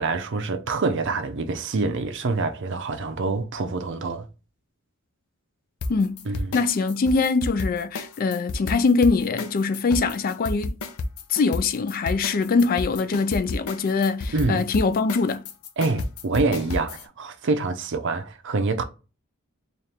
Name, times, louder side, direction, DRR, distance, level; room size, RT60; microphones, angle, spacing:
voice 1, 0.0-4.3 6.3-6.5 14.3-14.6 15.8-18.8, right 3 dB, 55° right, 0.6 m, -26 dB
sound 1, 5.8-17.1, left 2 dB, 90° left, 0.6 m, -31 dB
voice 2, 6.5-10.8 11.3-15.4, left 4 dB, 40° left, 0.4 m, -23 dB
4.3 x 2.5 x 3.3 m
head